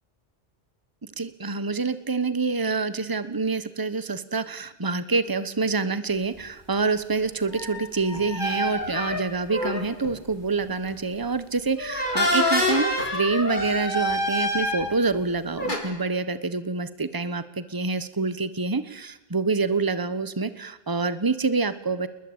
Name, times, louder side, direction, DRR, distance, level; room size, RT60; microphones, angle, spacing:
voice 1, 1.2-22.1, right 4 dB, 20° right, 13 dB, 1.3 m, -26 dB
sound 1, 7.5-10.1 10.6-10.9 11.8-15.2 15.6-15.8, left 1 dB, 50° left, 4.8 m, -26 dB
29.0 x 20.5 x 8.9 m, 1.0 s
omnidirectional pair, 1.0 m